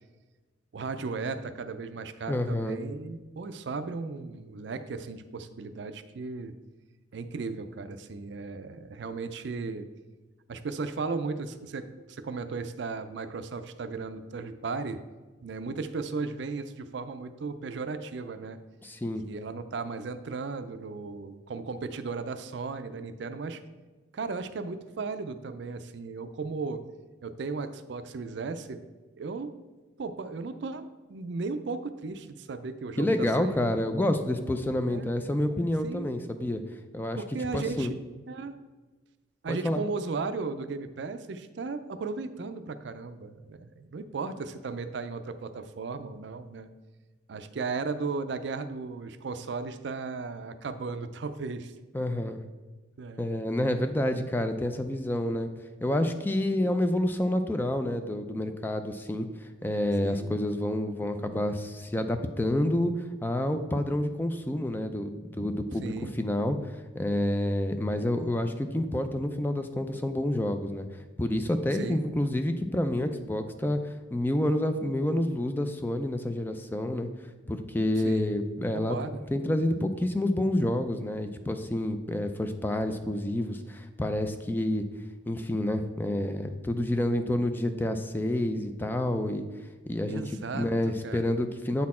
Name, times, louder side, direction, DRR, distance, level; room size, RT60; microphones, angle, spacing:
voice 1, 0.7-6.5 7.1-9.9 10.5-15.0 15.4-18.6 19.3-23.6 24.1-26.8 27.2-28.8 29.2-29.5 30.0-33.6 34.8-35.1 35.8-36.1 37.2-37.9 38.3-38.5 39.4-46.7 47.3-51.7 53.0-53.3 56.6-56.8 60.0-60.3 65.8-66.1 71.8-72.0 78.0-78.4 78.7-79.2 90.1-91.3, right 4 dB, 60° right, 11 dB, 0.4 m, -36 dB
voice 2, 2.3-2.8 18.8-19.2 33.0-36.6 36.9-37.2 37.5-37.9 39.5-39.8 51.9-52.4 53.2-55.5 55.8-66.6 66.9-70.9 71.2-77.1 77.5-79.0 79.3-84.8 85.3-89.4 89.9-90.2 90.5-91.9, left 1 dB, 10° left, 8 dB, 0.3 m, -28 dB
8.4 x 4.2 x 4.2 m, 1.3 s
head